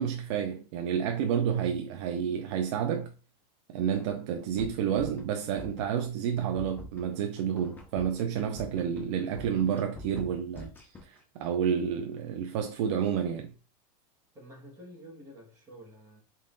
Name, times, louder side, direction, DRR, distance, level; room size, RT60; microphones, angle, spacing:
voice 1, 0.0-3.1 3.7-13.5, right 8 dB, 50° right, 0.4 m, -30 dB
sound 1, 4.0-4.1 4.4-5.3 5.6-6.1 6.4-11.2, left 2 dB, 10° left, 0.5 m, -45 dB
voice 2, 14.3-16.2, equal, 15° right, 1.4 m, -49 dB
3.7 x 3.6 x 2.5 m
supercardioid pair, 165°, 19 cm